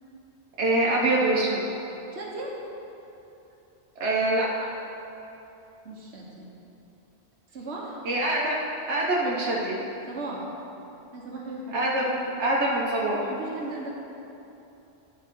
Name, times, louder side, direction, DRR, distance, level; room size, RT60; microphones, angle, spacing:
voice 1, 0.6-1.6 4.0-4.5 8.0-8.5 8.9-9.8 11.7-12.0 12.4-13.3, right 2 dB, 90° right, -5 dB, 1.3 m, -24 dB
voice 2, 2.1-2.5 5.8-6.5 7.5-8.0 10.1-10.4 11.1-12.3 13.3-13.9, right 2 dB, 75° right, -3 dB, 1.4 m, -37 dB
11.5 x 4.4 x 4.5 m, 2.9 s
omnidirectional pair, 1.1 m